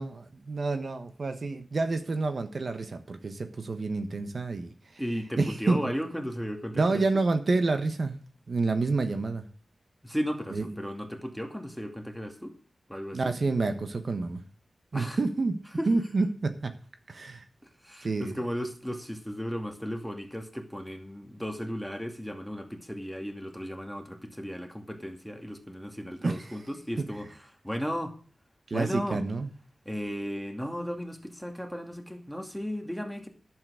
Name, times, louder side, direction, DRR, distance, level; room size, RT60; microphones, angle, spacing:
voice 1, 0.0-4.7 5.4-5.9 6.7-8.2 8.5-9.4 10.5-10.6 13.1-14.4 14.9-15.6 15.9-16.7 17.1-17.4 18.0-18.3 26.2-26.4 28.7-29.5, right 3 dB, 60° right, 8 dB, 1.3 m, -28 dB
voice 2, 5.0-7.0 10.0-12.5 12.9-13.3 14.9-15.2 15.8-15.9 17.8-27.3 27.6-28.1 28.7-29.2 29.9-33.3, equal, ahead, 4 dB, 2.4 m, -35 dB
11.0 x 7.9 x 6.4 m, 0.40 s
wide cardioid pair, 70°, 0 cm